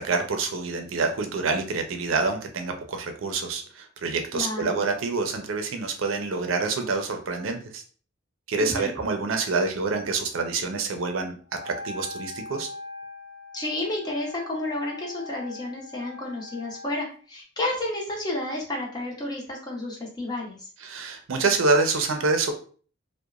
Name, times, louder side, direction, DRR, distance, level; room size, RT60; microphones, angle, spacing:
voice 1, 0.0-7.8 8.5-11.3 11.6-12.7 20.8-22.5, right 3 dB, 80° right, 5 dB, 0.5 m, -27 dB
voice 2, 4.3-4.8 8.6-8.9 13.5-20.7, left 1 dB, 20° left, -1 dB, 0.7 m, -31 dB
Wind instrument woodwind instrument, 11.5-17.1, left 3 dB, 35° right, 0.8 m, -41 dB
2.8 x 2.1 x 2.3 m, 0.42 s
head